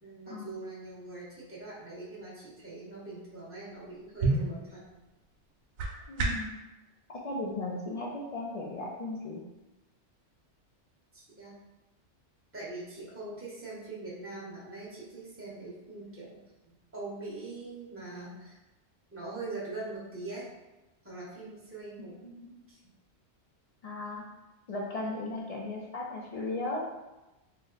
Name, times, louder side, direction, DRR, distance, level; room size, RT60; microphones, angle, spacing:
voice 1, 0.0-4.8 11.1-11.6 12.5-16.4 16.6-18.6 19.1-20.5 21.0-22.2 22.7-22.8, right 2 dB, 15° right, -7 dB, 0.9 m, -42 dB
sound 1, 3.7-6.6, right 3 dB, 75° right, 0.9 m, -32 dB
voice 2, 6.1-6.5 7.1-9.4 22.2-22.5 23.8-24.2 24.7-26.8, left 2 dB, 60° left, -2 dB, 0.4 m, -36 dB
2.9 x 2.1 x 3.8 m, 1.0 s
omnidirectional pair, 1.2 m